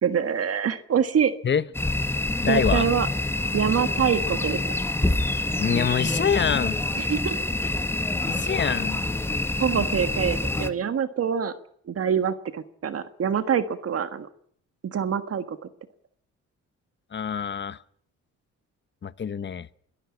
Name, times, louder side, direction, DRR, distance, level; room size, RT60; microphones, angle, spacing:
voice 1, 0.0-1.3 2.5-3.1 3.5-4.6 7.0-7.3 9.6-11.5 11.9-14.3 14.8-15.6, right 8 dB, 50° right, 11 dB, 1.6 m, -25 dB
sound 1, 1.7-10.7, left 2 dB, 10° left, 1.5 m, -26 dB
voice 2, 2.4-2.9 5.6-6.8 8.3-9.0 17.1-17.8 19.0-19.7, left 7 dB, 35° left, 17 dB, 0.9 m, -25 dB
22.5 x 13.5 x 8.7 m, 0.63 s
cardioid pair, 90°, 30 cm